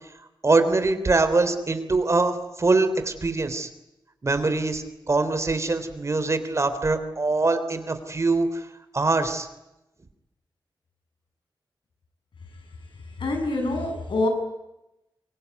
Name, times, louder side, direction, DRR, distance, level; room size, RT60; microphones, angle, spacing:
voice 1, 0.4-3.7 4.2-8.6 8.9-9.5, right 3 dB, 35° right, 10 dB, 3.4 m, -23 dB
voice 2, 13.2-14.3, left 2 dB, 85° left, 4 dB, 7.9 m, -25 dB
25.0 x 23.0 x 9.6 m, 0.92 s
wide cardioid pair, 140°, 8 cm